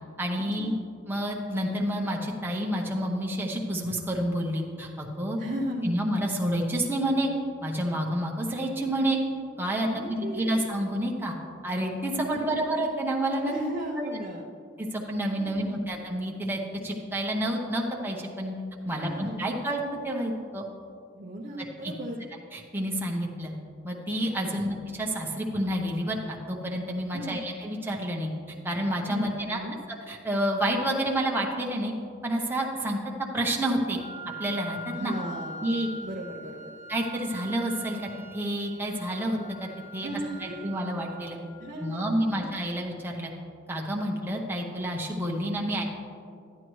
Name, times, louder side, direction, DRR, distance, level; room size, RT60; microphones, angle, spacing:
voice 1, 0.2-0.7 1.1-5.4 5.8-7.3 7.6-9.2 9.6-11.3 11.6-13.6 14.0-14.1 14.8-18.5 18.9-20.6 21.8-21.9 22.5-23.5 23.8-28.3 28.6-29.6 30.1-31.9 32.2-33.0 33.3-34.0 34.4-35.1 35.6-35.9 36.9-38.0 38.3-40.1 40.4-41.4 41.8-43.3 43.7-45.8, right 1 dB, 10° right, -1 dB, 0.9 m, -29 dB
voice 2, 5.4-5.9 9.8-10.5 12.2-12.6 13.5-14.5 15.4-15.8 19.0-19.4 21.1-22.2 24.4-24.6 27.1-27.4 29.1-29.8 34.9-35.7 36.0-36.7 40.0-40.6 41.6-42.5, right 1 dB, 40° right, -2 dB, 0.7 m, -36 dB
Wind instrument woodwind instrument, 34.0-41.9, right 1 dB, 50° left, 1.3 m, -43 dB
12.0 x 9.2 x 3.1 m, 2.4 s
head